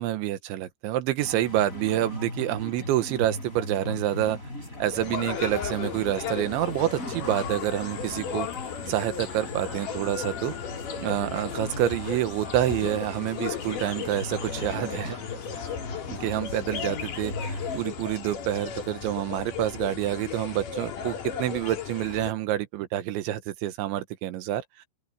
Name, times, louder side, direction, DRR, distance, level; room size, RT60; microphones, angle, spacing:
voice 1, 0.0-4.4 4.8-8.5 8.9-10.6 11.0-15.2 16.2-24.9, right 13 dB, 80° right, 3.6 m, -28 dB
sound 1, 1.2-17.8, left 1 dB, 15° left, 8.1 m, -39 dB
sound 2, 4.9-22.3, left 7 dB, 50° left, 3.5 m, -35 dB
open air
omnidirectional pair, 5.3 m